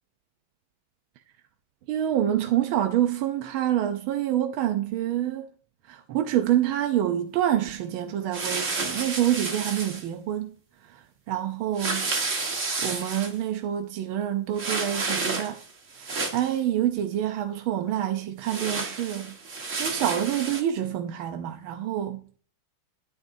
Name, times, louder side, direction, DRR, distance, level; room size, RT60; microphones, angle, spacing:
voice 1, 1.9-5.5 5.8-10.5 10.8-12.1 12.8-15.6 16.0-19.3 19.8-22.2, right 11 dB, 85° right, 1.6 m, -27 dB
sound 1, 8.3-10.0 11.8-13.3 14.6-15.7 15.9-16.6 18.4-20.6, right 3 dB, 40° right, 1.8 m, -30 dB
11.0 x 9.7 x 2.7 m
omnidirectional pair, 2.2 m